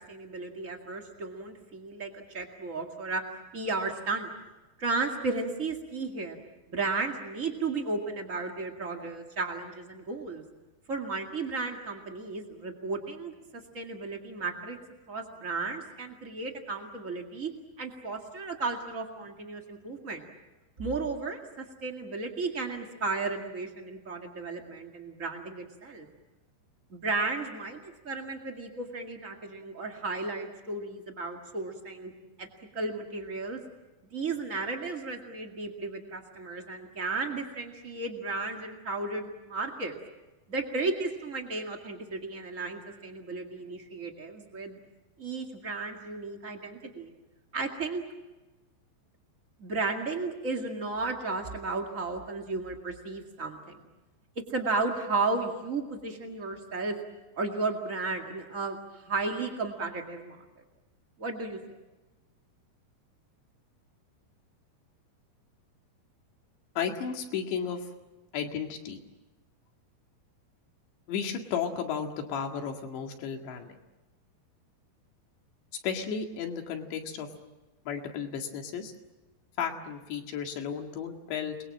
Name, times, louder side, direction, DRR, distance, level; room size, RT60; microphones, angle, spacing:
voice 1, 0.1-3.2 3.5-4.3 4.8-6.4 6.7-10.4 10.9-14.8 15.1-17.5 17.8-20.3 20.8-26.1 26.9-32.1 32.4-32.5 32.7-33.6 34.1-40.0 40.5-44.8 45.2-47.1 47.5-48.0 49.6-53.8 54.3-56.9 57.3-60.4 61.2-61.6, right 3 dB, 70° right, 2 dB, 0.7 m, -34 dB
voice 2, 66.8-67.9 68.3-69.0 71.1-73.8 75.8-77.3 77.9-78.9 79.6-81.6, left 7 dB, 70° left, 3 dB, 4.2 m, -33 dB
29.5 x 22.0 x 7.5 m, 1.1 s
omnidirectional pair, 5.3 m